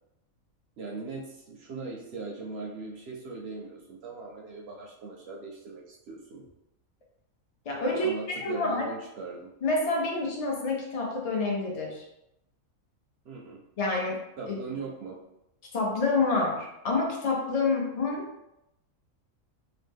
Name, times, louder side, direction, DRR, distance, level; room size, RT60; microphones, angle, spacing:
voice 1, 0.8-6.5 7.9-9.5 13.2-13.6 14.4-15.2, right 3 dB, 65° right, -2 dB, 0.6 m, -40 dB
voice 2, 7.7-8.1 8.4-8.9 9.6-12.0 13.8-14.2 14.5-14.8 15.7-18.3, left 3 dB, 60° left, -1 dB, 0.4 m, -28 dB
2.9 x 2.0 x 3.4 m, 0.86 s
omnidirectional pair, 1.5 m